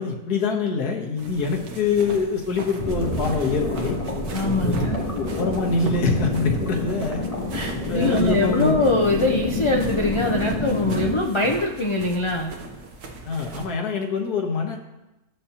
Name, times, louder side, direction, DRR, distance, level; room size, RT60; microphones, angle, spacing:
voice 1, 0.0-4.0 4.6-4.9 5.2-7.2 7.9-8.8 13.3-14.8, left 4 dB, 85° left, 1 dB, 1.7 m, -25 dB
sound 1, 1.2-13.7, right 3 dB, 75° right, 1.6 m, -36 dB
sound 2, 2.8-11.2, left 2 dB, 25° left, 1.0 m, -28 dB
voice 2, 4.3-5.1 7.5-12.5, left 2 dB, 50° left, 0 dB, 0.3 m, -23 dB
14.0 x 7.0 x 2.9 m, 0.98 s
omnidirectional pair, 1.6 m